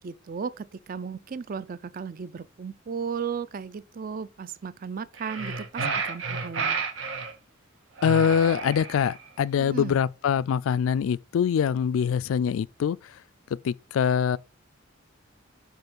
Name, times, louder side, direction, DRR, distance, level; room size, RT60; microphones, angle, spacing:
voice 1, 0.0-6.8 9.6-10.0, right 6 dB, 45° right, 0.4 m, -35 dB
sound 1, 5.1-7.3 8.0-9.2, right 4 dB, 80° right, 1.5 m, -31 dB
voice 2, 8.0-13.0 13.6-14.4, left 7 dB, 90° left, 0.3 m, -24 dB
5.5 x 4.5 x 6.1 m
head